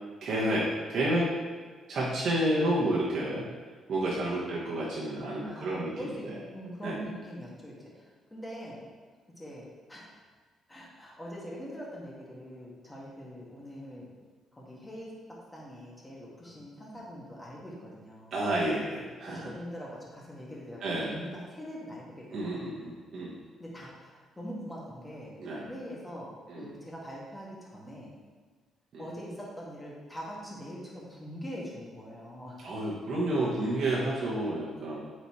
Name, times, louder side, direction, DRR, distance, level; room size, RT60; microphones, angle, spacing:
voice 1, 0.2-1.3 1.9-3.4 3.9-6.4 6.8-7.0 18.3-19.5 20.8-21.2 22.3-23.3 25.4-25.6 26.5-26.7 28.9-29.1 32.6-35.0, right 1 dB, 60° right, -6 dB, 1.3 m, -30 dB
voice 2, 5.4-8.8 9.4-10.0 10.7-14.1 14.5-15.1 15.5-18.4 19.3-22.8 23.6-28.1 29.0-32.6, equal, 15° left, -5 dB, 1.9 m, -43 dB
8.0 x 4.2 x 3.2 m, 1.4 s
cardioid pair, 90°, 0 cm